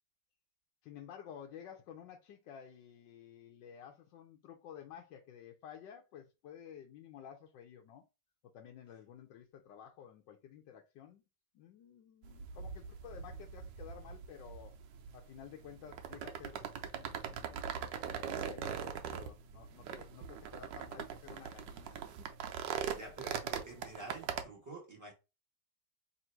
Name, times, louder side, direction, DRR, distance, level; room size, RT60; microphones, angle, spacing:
voice 1, 0.8-8.0 8.5-11.2 11.5-14.8 15.1-17.7 18.0-22.3, left 9 dB, 85° left, 1.3 m, -53 dB
sound 1, 12.2-24.4, right 8 dB, 85° right, 1.3 m, -42 dB
voice 2, 22.9-25.1, right 2 dB, 10° right, 1.3 m, -48 dB
3.4 x 2.6 x 4.4 m
omnidirectional pair, 1.9 m